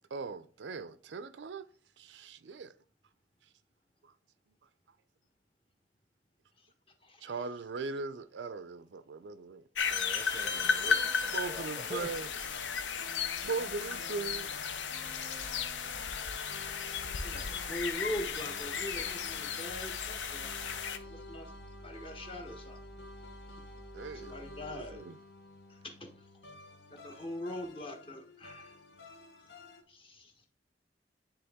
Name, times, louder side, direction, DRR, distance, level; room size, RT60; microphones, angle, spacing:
voice 1, 0.1-1.7 2.0-2.7 4.0-4.1 7.2-9.6 10.7-10.8 11.3-12.3 13.4-14.5 23.9-24.3 24.7-25.2, right 4 dB, 75° right, 0.5 m, -39 dB
voice 2, 7.0-7.3 16.7-21.5 21.8-22.8 23.5-23.6 24.1-25.0 25.7-26.1 26.9-28.8 29.9-30.5, equal, 30° left, 1.2 m, -43 dB
sound 1, 9.8-21.0, left 6 dB, 85° left, 0.7 m, -34 dB
voice 3, 9.8-12.1, right 1 dB, 25° right, 0.6 m, -45 dB
sound 2, 10.2-29.8, left 2 dB, 60° left, 1.1 m, -52 dB
sound 3, 19.6-25.0, right 1 dB, 15° left, 1.6 m, -52 dB
9.7 x 3.5 x 3.6 m
head